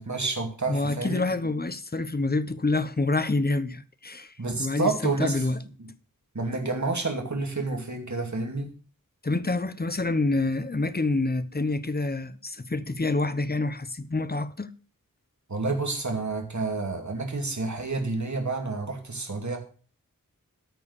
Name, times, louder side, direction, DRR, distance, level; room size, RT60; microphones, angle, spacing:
voice 1, 0.0-1.2 4.4-5.5 5.8-5.9 6.3-8.7 15.5-19.6, right 3 dB, 55° right, 2.4 m, -29 dB
voice 2, 0.7-4.3 4.6-5.6 9.2-14.7, left 2 dB, 30° left, 0.8 m, -27 dB
13.5 x 4.6 x 7.0 m
wide cardioid pair, 60°, 34 cm